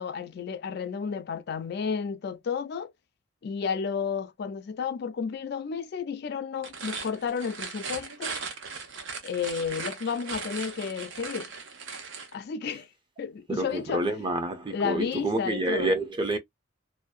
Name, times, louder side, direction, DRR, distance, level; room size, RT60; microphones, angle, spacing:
voice 1, 0.0-2.9 3.4-8.4 9.2-11.5 12.3-12.9 13.2-14.0 14.7-15.9, left 6 dB, 55° left, 0.4 m, -32 dB
sound 1, 6.5-12.3, right 5 dB, 65° right, 0.7 m, -38 dB
voice 2, 13.5-16.4, right 1 dB, 25° right, 0.6 m, -28 dB
2.6 x 2.1 x 2.3 m
head